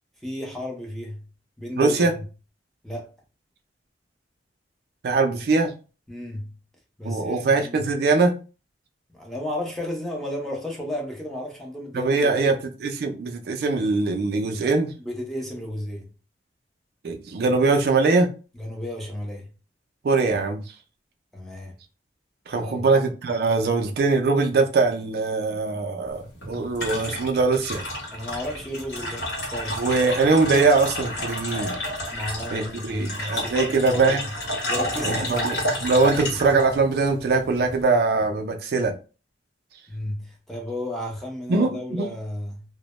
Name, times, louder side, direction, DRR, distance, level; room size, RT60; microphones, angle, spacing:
voice 1, 0.2-1.2 1.6-2.1 2.8-3.1 6.1-6.6 7.0-7.8 9.1-12.6 15.0-16.1 18.5-19.5 21.3-21.7 22.5-22.9 28.1-29.8 32.1-34.2 34.7-35.7 39.9-42.6, left 1 dB, ahead, 0.5 m, -33 dB
voice 2, 1.8-2.1 5.0-5.7 7.0-8.4 11.9-12.6 12.8-14.9 17.0-18.3 20.0-20.6 22.5-27.8 29.8-31.8 32.5-34.2 35.0-38.9 41.5-42.1, right 3 dB, 55° right, 0.3 m, -22 dB
sound 1, 26.1-37.8, left 1 dB, 65° left, 0.9 m, -31 dB
2.1 x 2.0 x 2.9 m
head